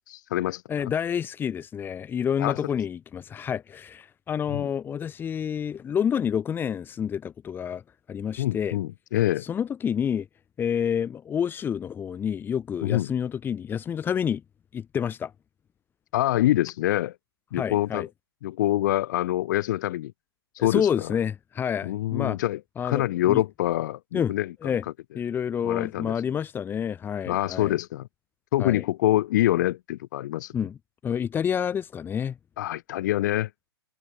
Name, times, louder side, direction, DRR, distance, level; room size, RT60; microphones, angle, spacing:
voice 1, 0.1-0.9 2.4-2.6 4.5-4.7 8.4-9.4 12.8-13.1 16.1-17.1 17.5-18.0 18.4-20.1 20.5-21.1 21.8-24.7 25.6-26.1 27.3-28.1 28.5-30.5 32.6-33.5, left 15 dB, 45° left, 4.6 m, -25 dB
voice 2, 0.7-7.8 8.1-8.8 9.4-10.3 10.6-14.4 14.7-15.3 17.6-18.1 20.6-22.4 22.8-23.4 24.1-24.3 24.6-24.8 25.1-27.8 28.6-28.8 30.5-30.8 31.0-32.4, left 8 dB, 15° left, 5.0 m, -28 dB
figure-of-eight pair, 120°, 14 cm